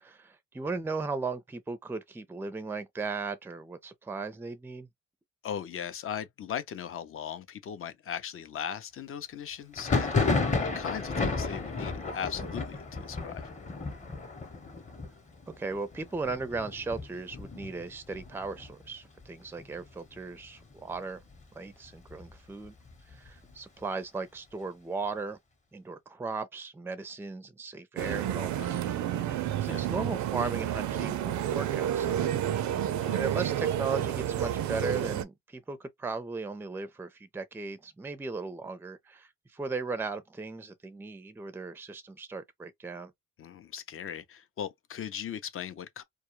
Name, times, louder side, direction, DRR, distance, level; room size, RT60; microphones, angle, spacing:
voice 1, 0.0-4.9 15.6-21.2 21.5-22.7 23.1-25.4 25.7-32.3 33.1-43.1, right 4 dB, 5° right, 0.4 m, -37 dB
voice 2, 5.4-10.3 10.6-13.5 28.6-28.9 29.7-29.9 32.7-33.2 43.4-46.0, left 8 dB, 45° left, 0.5 m, -38 dB
Thunder, 9.7-19.2 19.5-20.2 20.4-21.4 21.8-23.5, left 3 dB, 25° left, 0.8 m, -33 dB
sound 1, 28.0-35.2, right 11 dB, 70° right, 0.5 m, -30 dB
2.3 x 2.0 x 3.0 m
cardioid pair, 90°, 30 cm